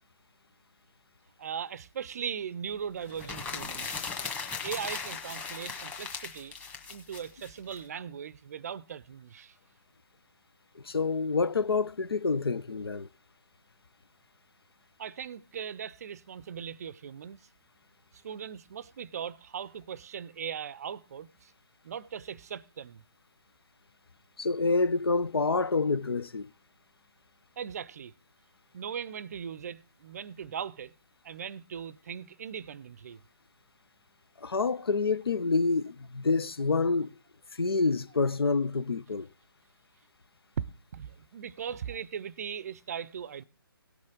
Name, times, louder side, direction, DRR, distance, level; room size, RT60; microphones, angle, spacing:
voice 1, 1.4-4.0 4.6-6.6 6.9-9.6 15.0-17.4 18.2-21.5 21.8-23.0 27.6-28.1 28.7-30.9 31.2-33.2 40.6-40.7 40.9-43.4, right 8 dB, 40° right, 0.5 m, -39 dB
sound 1, 3.1-7.8, left 4 dB, 10° left, 1.5 m, -38 dB
voice 2, 10.8-13.1 24.4-26.5 34.4-37.1 37.6-39.3, left 4 dB, 75° left, 0.6 m, -27 dB
17.5 x 6.4 x 3.7 m
figure-of-eight pair, 140°, 13 cm